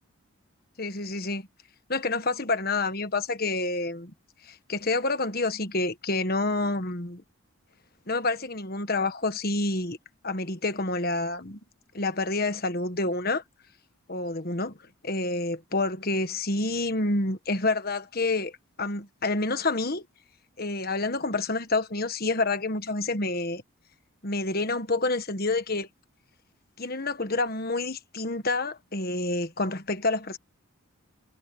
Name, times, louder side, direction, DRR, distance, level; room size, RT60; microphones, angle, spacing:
voice 1, 0.8-1.5 1.9-4.1 4.4-7.2 8.1-10.0 10.2-11.6 11.9-13.4 14.1-14.7 15.0-18.5 18.8-20.0 20.6-23.6 24.2-25.9 26.8-30.4, left 2 dB, 45° left, 1.5 m, -28 dB
head